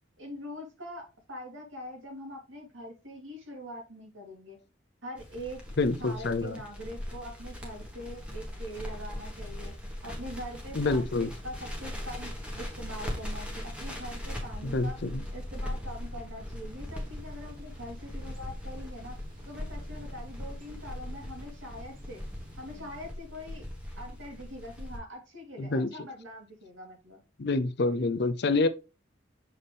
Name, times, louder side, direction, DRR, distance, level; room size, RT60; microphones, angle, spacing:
voice 1, 0.2-4.6 5.0-5.6 5.9-9.7 10.0-12.3 12.6-15.0 15.3-19.2 19.5-22.2 22.6-23.7 24.0-27.2, equal, 85° right, 2.8 m, -43 dB
Crackle, 5.1-25.0, left 1 dB, 5° right, 1.5 m, -40 dB
voice 2, 5.8-6.6 10.8-11.3 14.6-15.2 25.6-25.9 27.4-28.7, left 3 dB, 60° left, 0.6 m, -27 dB
Thunder / Bicycle, 16.6-23.1, equal, 45° right, 1.5 m, -53 dB
6.5 x 4.3 x 3.4 m
head